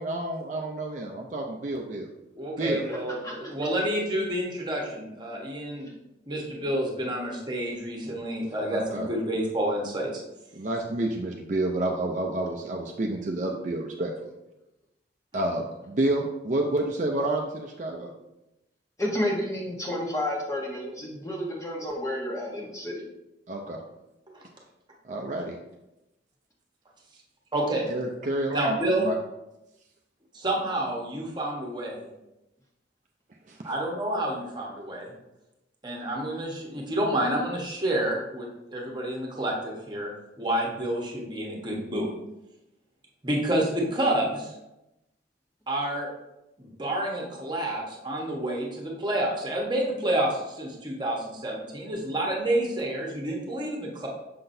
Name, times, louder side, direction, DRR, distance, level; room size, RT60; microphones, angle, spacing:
voice 1, 0.0-2.1 2.6-2.9 8.7-9.1 10.6-14.1 15.3-18.1 23.5-23.8 25.1-25.5 27.9-29.1 33.5-33.6, right 1 dB, 40° right, 1 dB, 0.5 m, -29 dB
voice 2, 2.4-5.9 6.3-10.2 27.5-27.9 28.5-29.1 30.3-32.1 33.6-35.1 35.8-40.1 40.4-42.1 43.2-44.5 45.7-46.1 46.6-54.1, right 1 dB, 25° right, -1 dB, 1.2 m, -29 dB
voice 3, 2.9-3.6 5.8-5.9 8.4-8.6 19.0-23.0, left 1 dB, 15° left, -3 dB, 1.1 m, -31 dB
6.6 x 5.8 x 2.7 m, 0.92 s
head